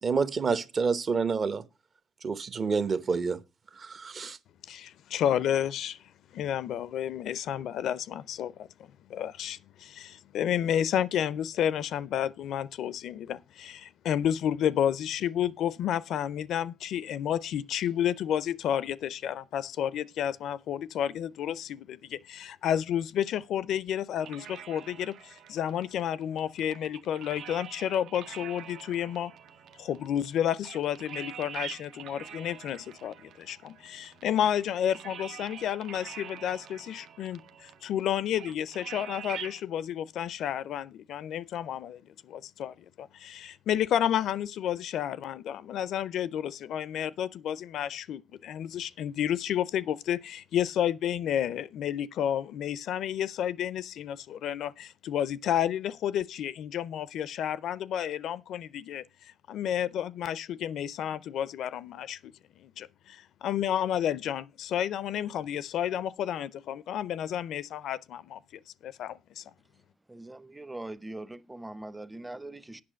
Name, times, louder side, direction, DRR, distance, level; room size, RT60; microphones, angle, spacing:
voice 1, 0.0-1.6 2.2-3.4 3.7-4.4, right 5 dB, 45° right, 0.8 m, -28 dB
voice 2, 4.7-6.0 6.3-8.7 9.1-29.3 29.8-62.3 62.6-68.4 68.8-69.4, left 10 dB, 75° left, 0.4 m, -31 dB
sound 1, 24.2-39.6, right 8 dB, 75° right, 0.6 m, -45 dB
voice 3, 70.1-72.8, right 2 dB, 10° right, 0.6 m, -41 dB
8.6 x 6.1 x 6.2 m
cardioid pair, 90°, 0 cm